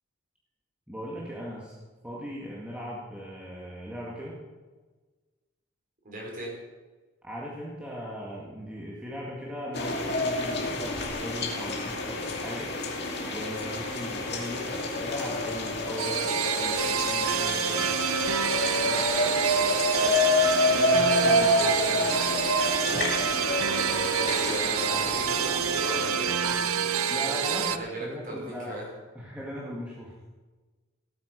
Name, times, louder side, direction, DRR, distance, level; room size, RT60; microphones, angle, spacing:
voice 1, 0.9-1.8 2.0-4.4 7.2-12.7 13.3-17.9 20.6-22.1 27.1-28.8 29.2-30.3, equal, 5° right, -5 dB, 2.0 m, -39 dB
voice 2, 6.0-6.6 13.6-13.8 18.6-20.3 22.8-27.2 27.5-28.9, right 1 dB, 40° right, -2 dB, 4.9 m, -38 dB
sound 1, 9.7-26.2, left 2 dB, 50° left, 2.3 m, -28 dB
sound 2, 16.0-27.8, right 7 dB, 90° right, 0.7 m, -27 dB
17.0 x 9.4 x 5.2 m, 1.3 s
head